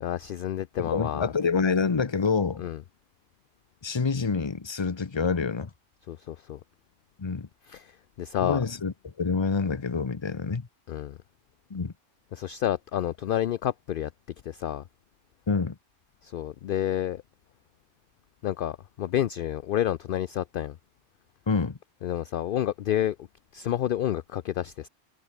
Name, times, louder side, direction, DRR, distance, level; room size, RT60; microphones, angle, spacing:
voice 1, 0.0-1.3 2.6-2.8 6.1-6.6 7.7-7.9 8.2-8.6 10.9-11.2 12.3-14.1 14.4-14.8 16.2-17.2 18.4-20.8 22.0-23.2 23.5-24.9, left 11 dB, 60° left, 0.6 m, -29 dB
voice 2, 0.8-2.6 3.8-5.7 7.2-7.5 8.4-10.7 11.7-11.9 15.5-15.7 21.5-21.8, left 5 dB, 25° left, 0.8 m, -27 dB
omnidirectional pair, 1.3 m